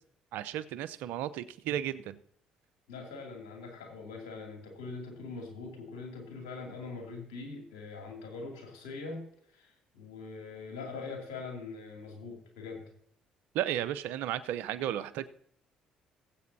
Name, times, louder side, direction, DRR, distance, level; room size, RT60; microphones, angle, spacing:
voice 1, 0.3-2.2 13.5-15.3, right 11 dB, 80° right, 15 dB, 0.7 m, -34 dB
voice 2, 2.9-9.2 9.5-12.8, left 4 dB, 90° left, 1 dB, 2.7 m, -42 dB
19.0 x 8.3 x 2.8 m, 0.65 s
supercardioid pair, 60°, 3 cm